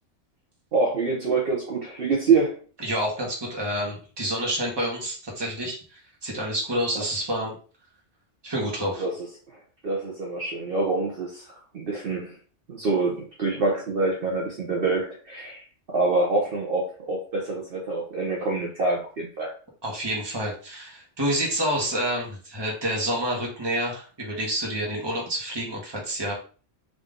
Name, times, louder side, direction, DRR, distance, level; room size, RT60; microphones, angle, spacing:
voice 1, 0.7-2.6 6.9-7.0 9.0-12.4 12.7-19.5, right 3 dB, 55° right, -2 dB, 1.0 m, -26 dB
voice 2, 2.8-7.5 8.4-9.0 19.8-26.3, equal, 20° right, -2 dB, 1.1 m, -28 dB
3.8 x 2.7 x 3.6 m, 0.39 s
omnidirectional pair, 1.3 m